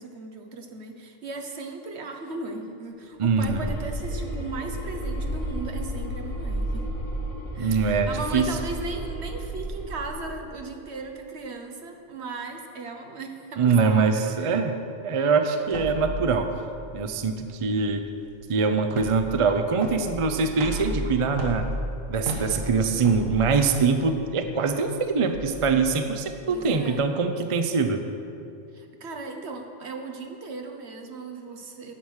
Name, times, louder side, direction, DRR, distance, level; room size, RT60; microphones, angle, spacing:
voice 1, 0.0-6.9 7.5-14.6 26.5-27.1 28.7-31.9, right 3 dB, 60° right, 4 dB, 1.3 m, -37 dB
sound 1, 3.2-10.5, right 1 dB, 20° left, 1.9 m, -32 dB
voice 2, 3.2-3.6 7.6-8.5 13.6-16.5 16.9-18.0 18.5-21.6 22.1-28.0, right 4 dB, 40° right, 7 dB, 0.5 m, -23 dB
sound 2, 15.7-26.9, right 1 dB, 85° right, 1.8 m, -35 dB
9.8 x 8.7 x 6.4 m, 2.6 s
omnidirectional pair, 1.3 m